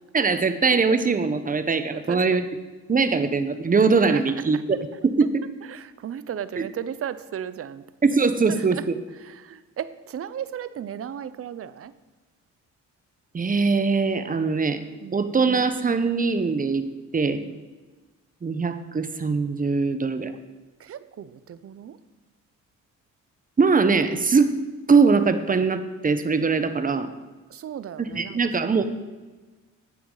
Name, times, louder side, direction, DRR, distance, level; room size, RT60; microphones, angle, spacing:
voice 1, 0.1-2.4 2.9-4.6 5.0-5.3 6.6-6.7 8.0-8.8 13.3-14.8 15.1-16.8 17.1-17.4 18.4-20.3 23.6-24.6 24.9-27.1 28.0-28.9, right 4 dB, 25° right, 10 dB, 1.1 m, -21 dB
voice 2, 1.9-2.4 4.1-4.6 5.7-7.8 8.5-8.9 9.2-11.9 15.0-15.2 17.4-17.6 20.8-22.0 27.5-28.9, right 9 dB, 50° right, 15 dB, 0.7 m, -35 dB
14.5 x 9.3 x 4.0 m, 1.3 s
cardioid pair, 90°, 30 cm